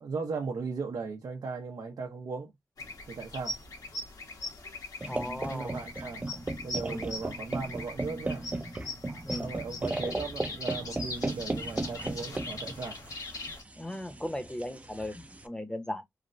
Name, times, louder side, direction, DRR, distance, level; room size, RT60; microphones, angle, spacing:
voice 1, 0.0-2.5 3.1-3.6 5.5-6.3 6.6-8.5 9.4-13.0, right 4 dB, 85° right, 0.6 m, -37 dB
sound 1, 2.8-13.6, left 2 dB, 70° left, 1.1 m, -41 dB
sound 2, 5.0-15.4, right 2 dB, 20° right, 0.4 m, -36 dB
voice 2, 5.1-5.8 6.9-7.0 9.2-9.5 13.8-16.0, left 1 dB, 10° left, 0.7 m, -37 dB
3.2 x 2.1 x 2.5 m
wide cardioid pair, 80°, 6 cm